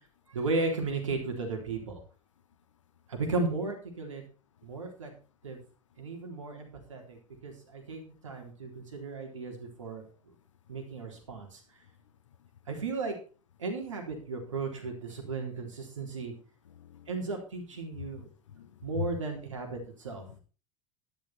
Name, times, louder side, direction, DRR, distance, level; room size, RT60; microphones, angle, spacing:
voice 1, 0.3-2.0 3.1-4.2 4.6-5.1 5.4-5.6 6.0-7.2 7.4-10.0 10.7-11.6 12.7-13.1 13.6-16.3 17.1-18.3 18.8-20.2, right 3 dB, 75° right, 3 dB, 3.8 m, -35 dB
voice 2, 16.8-17.3 18.0-18.1 18.5-19.1 20.3-20.4, left 7 dB, 70° left, 12 dB, 1.4 m, -39 dB
12.0 x 11.0 x 4.3 m, 0.35 s
figure-of-eight pair, 80°, 16 cm